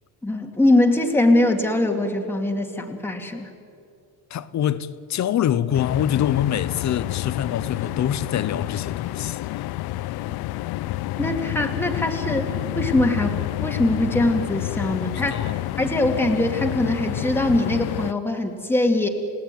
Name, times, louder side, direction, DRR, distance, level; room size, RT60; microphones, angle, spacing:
voice 1, 0.2-3.5 11.2-15.4 15.8-19.1, left 1 dB, 5° left, 2.4 m, -22 dB
voice 2, 4.3-9.6 14.9-15.6, left 10 dB, 40° left, 1.0 m, -25 dB
sound 1, 5.7-18.1, left 17 dB, 60° left, 0.6 m, -29 dB
30.0 x 18.0 x 9.3 m
cardioid pair, 140°, 43 cm